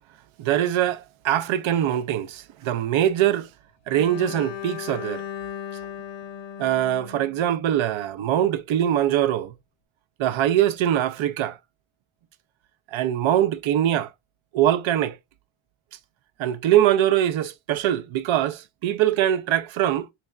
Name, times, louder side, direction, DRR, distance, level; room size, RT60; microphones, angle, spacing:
voice 1, 0.4-3.5 3.9-5.2 6.6-9.5 10.2-11.6 12.9-14.1 14.5-15.2 16.4-20.1, right 11 dB, 80° right, 0.6 m, -22 dB
Bowed string instrument, 3.9-8.0, left 9 dB, 75° left, 0.6 m, -37 dB
4.2 x 3.3 x 2.3 m
wide cardioid pair, 130°, 46 cm